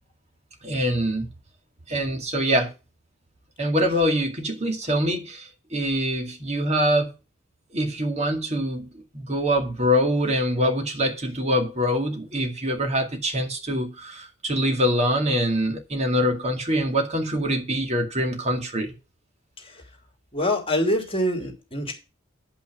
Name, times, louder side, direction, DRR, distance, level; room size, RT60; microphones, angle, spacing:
voice 1, 0.6-1.3 1.9-2.7 3.6-7.1 7.7-18.9, equal, 35° right, 2.3 m, -24 dB
voice 2, 20.3-21.9, left 1 dB, 30° left, 2.8 m, -24 dB
10.0 x 5.6 x 6.1 m
head